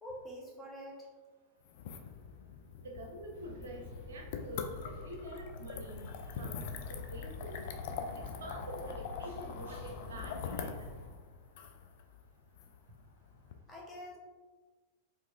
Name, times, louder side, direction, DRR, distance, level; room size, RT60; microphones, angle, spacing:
voice 1, 0.0-1.1 13.7-14.2, equal, 10° left, -4 dB, 0.9 m, -46 dB
sound 1, 1.7-13.5, left 6 dB, 50° left, 0.3 m, -44 dB
voice 2, 2.8-3.8 4.1-6.1 6.4-6.6 6.9-7.6 8.1-10.9, right 1 dB, 65° right, 2 dB, 0.5 m, -46 dB
sound 2, 3.3-11.1, left 2 dB, 65° left, 1.2 m, -48 dB
4.5 x 2.4 x 2.4 m, 1.3 s
figure-of-eight pair, 90°, 0 cm